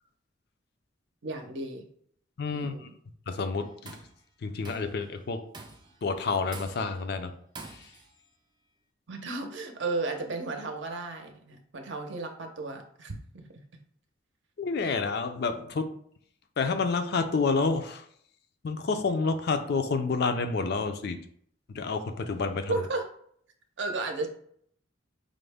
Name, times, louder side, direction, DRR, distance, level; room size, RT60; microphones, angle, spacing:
voice 1, 1.2-1.8 2.5-2.9 9.1-13.4 22.7-23.1 23.8-24.3, right 3 dB, 65° right, 4 dB, 0.6 m, -34 dB
voice 2, 2.4-2.9 3.3-4.0 4.4-5.4 6.0-7.3 7.7-7.9 14.6-15.9 16.6-18.1 18.6-21.2 21.7-22.7, left 4 dB, 55° left, 8 dB, 0.4 m, -29 dB
Tools, 3.6-4.2 4.6-5.0 5.5-6.0 6.5-7.0 7.6-8.1, right 3 dB, 20° right, 0.4 m, -46 dB
5.1 x 2.1 x 3.4 m, 0.63 s
head